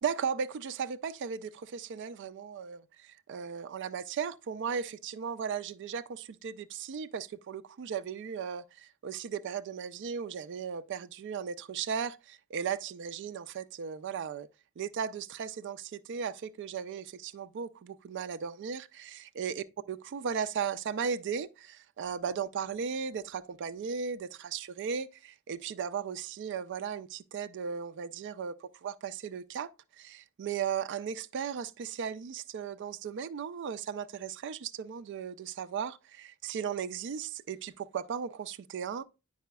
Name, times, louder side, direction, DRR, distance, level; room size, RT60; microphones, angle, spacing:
voice 1, 0.0-14.5 14.8-39.0, right 7 dB, 55° right, 0.4 m, -36 dB
9.2 x 4.8 x 2.2 m
head